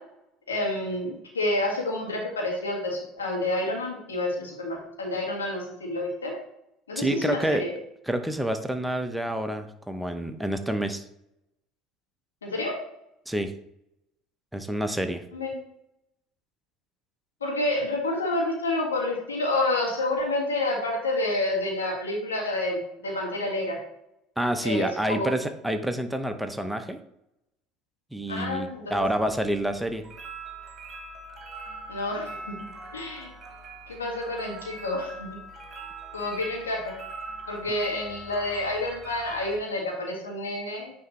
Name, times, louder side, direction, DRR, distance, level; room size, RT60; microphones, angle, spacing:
voice 1, 0.5-6.3 6.9-7.7 12.4-12.8 15.3-15.6 17.4-23.8 24.6-25.3 28.3-29.0 31.9-33.3 33.9-35.4 36.1-37.0 37.5-40.9, left 2 dB, 85° left, -2 dB, 1.8 m, -29 dB
voice 2, 7.0-7.7 8.1-11.0 13.3-13.5 14.5-15.2 24.4-27.0 28.1-30.1, right 1 dB, 5° right, 7 dB, 0.7 m, -28 dB
sound 1, 28.9-39.6, right 2 dB, 30° right, 1.5 m, -43 dB
9.2 x 3.4 x 3.2 m, 0.80 s
hypercardioid pair, 70°, 0 cm